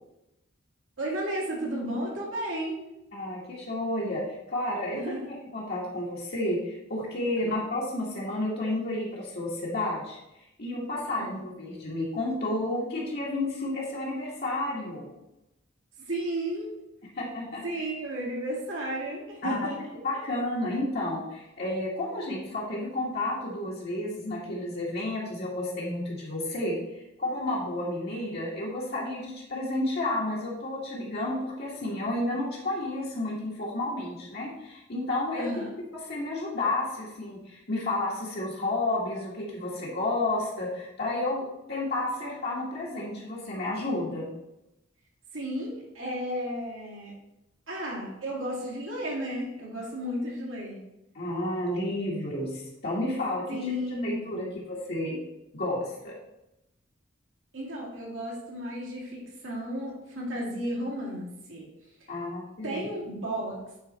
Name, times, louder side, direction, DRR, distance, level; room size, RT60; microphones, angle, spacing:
voice 1, 1.0-2.8 4.9-5.4 7.4-7.7 11.2-11.3 16.0-16.7 17.6-20.2 35.4-35.7 45.3-47.1 47.7-50.8 53.5-54.6 57.5-61.7 62.6-63.6, right 1 dB, 75° right, -3 dB, 2.4 m, -33 dB
voice 2, 3.1-10.2 10.6-15.1 17.2-17.6 19.4-19.6 20.0-35.5 35.9-44.3 51.1-53.4 54.0-55.2 55.5-56.1 62.1-62.9, left 1 dB, 55° left, -5 dB, 1.6 m, -31 dB
8.8 x 4.1 x 4.2 m, 0.91 s
head